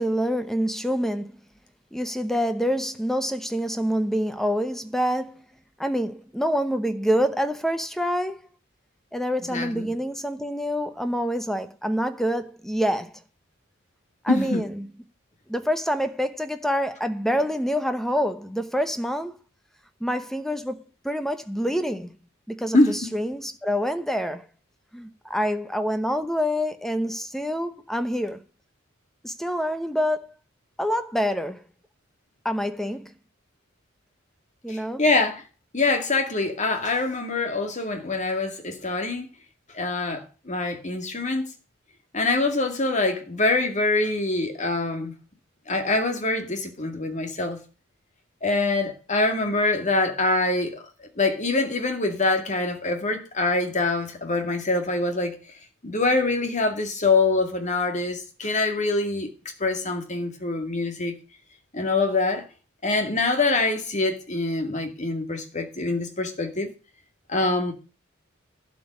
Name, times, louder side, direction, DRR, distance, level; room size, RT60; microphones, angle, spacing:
voice 1, 0.0-1.4 1.9-5.5 5.8-8.4 9.1-13.1 14.2-14.9 15.5-19.4 20.0-22.1 22.5-24.5 24.9-28.4 29.2-30.3 30.8-31.6 32.4-33.1 34.6-35.0, equal, ahead, 0.9 m, -26 dB
voice 2, 9.5-9.9 14.3-14.6 22.7-23.1 34.7-35.4 35.7-39.3 39.7-41.5 42.1-45.1 45.7-47.6 48.4-55.3 55.8-59.3 59.6-61.2 61.7-62.5 62.8-66.7 67.3-67.7, left 2 dB, 35° left, 2.2 m, -24 dB
12.0 x 5.4 x 8.3 m
head